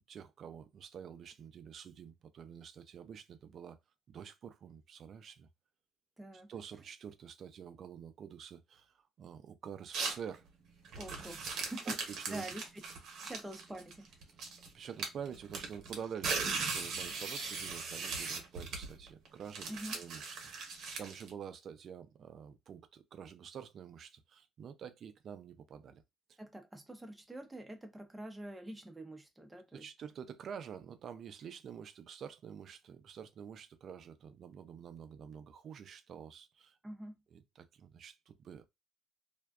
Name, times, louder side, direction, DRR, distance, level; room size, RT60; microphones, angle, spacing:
voice 1, 0.1-3.8 4.1-5.5 6.5-10.4 11.5-12.4 14.7-20.4 21.0-26.0 29.7-36.8 37.3-38.6, right 7 dB, 55° right, 0.4 m, -48 dB
voice 2, 6.2-6.5 10.9-12.6 13.2-14.4 19.7-20.0 26.4-29.9 36.8-37.2, right 1 dB, 10° right, 0.6 m, -46 dB
sound 1, 9.9-10.3 10.8-14.7 15.0-21.3, right 4 dB, 70° right, 0.8 m, -39 dB
2.5 x 2.2 x 2.3 m
cardioid pair, 95°, 0 cm